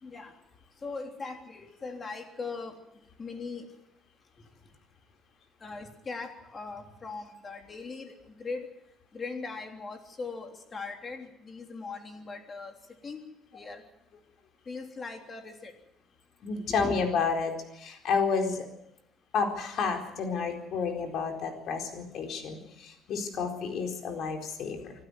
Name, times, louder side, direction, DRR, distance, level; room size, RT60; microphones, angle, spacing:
voice 1, 0.0-0.3 0.8-2.7 3.2-3.7 5.6-8.7 9.1-12.7 13.0-13.2 13.5-13.8 14.7-15.7 16.7-17.1, left 4 dB, 30° left, 4 dB, 3.4 m, -39 dB
voice 2, 16.4-18.6 19.3-24.9, left 5 dB, 60° left, 4 dB, 4.3 m, -30 dB
26.0 x 12.5 x 9.6 m, 0.84 s
cardioid pair, 135°, 0 cm